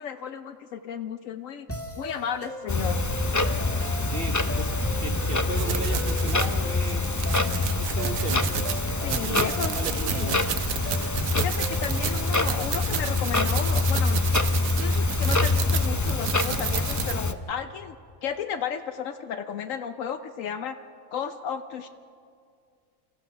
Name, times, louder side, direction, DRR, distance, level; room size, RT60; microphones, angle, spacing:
voice 1, 0.0-1.7 2.0-3.0 9.0-10.4 11.4-14.2 14.8-18.0 18.2-20.8 21.1-21.9, left 7 dB, 70° left, 9 dB, 1.0 m, -33 dB
sound 1, 1.7-12.4, equal, 10° left, 1.8 m, -37 dB
Clock, 2.7-17.3, left 2 dB, 25° left, 0.4 m, -25 dB
voice 2, 4.1-7.1 7.8-8.4 9.2-10.4, right 3 dB, 45° right, 6 dB, 1.0 m, -36 dB
sound 2, 5.5-17.1, right 10 dB, 75° right, 1.1 m, -33 dB
29.5 x 15.0 x 5.9 m, 2.3 s
omnidirectional pair, 1.4 m